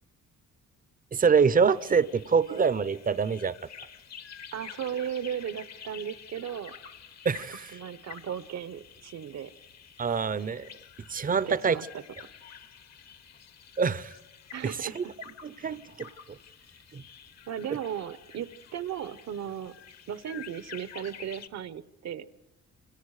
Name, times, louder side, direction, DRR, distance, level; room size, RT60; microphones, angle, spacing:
voice 1, 1.1-3.5 7.2-7.8 10.0-10.7 11.1-11.8 13.8-14.2 15.0-15.1 15.4-16.4 16.9-17.0, right 5 dB, 30° right, 16 dB, 0.8 m, -25 dB
sound 1, 1.7-21.5, left 7 dB, 60° left, 1.7 m, -49 dB
voice 2, 4.5-6.7 7.7-9.5 11.5-12.0 14.5-15.1 17.5-19.7 20.1-22.3, right 9 dB, 60° right, 15 dB, 1.1 m, -36 dB
28.0 x 25.5 x 4.9 m, 1.0 s
cardioid pair, 90°, 30 cm